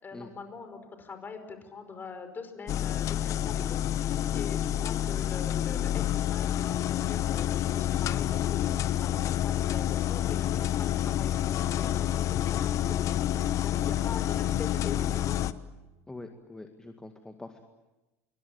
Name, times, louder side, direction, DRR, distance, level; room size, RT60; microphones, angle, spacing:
voice 1, 0.0-13.2 13.6-15.4, left 5 dB, 25° left, 8 dB, 5.4 m, -43 dB
sound 1, 2.7-15.5, left 11 dB, 40° left, 1.0 m, -28 dB
voice 2, 16.1-17.6, left 2 dB, 10° left, 5 dB, 2.1 m, -44 dB
26.5 x 23.5 x 8.7 m, 1.1 s
figure-of-eight pair, 75°, 8 cm